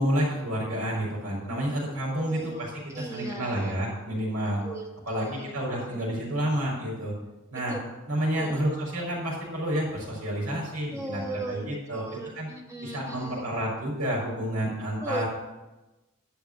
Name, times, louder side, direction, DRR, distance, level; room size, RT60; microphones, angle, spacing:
voice 1, 0.0-2.7 3.0-4.6 5.1-7.1 7.5-7.8 8.1-12.0 12.3-12.5 12.8-15.2, right 1 dB, 75° right, -5 dB, 4.4 m, -29 dB
voice 2, 1.9-2.7 2.9-3.8 4.6-4.8 5.1-6.0 7.7-7.8 8.3-8.7 10.9-13.5 15.0-15.2, right 2 dB, 15° right, 1 dB, 1.1 m, -38 dB
11.5 x 5.1 x 7.9 m, 1.1 s
head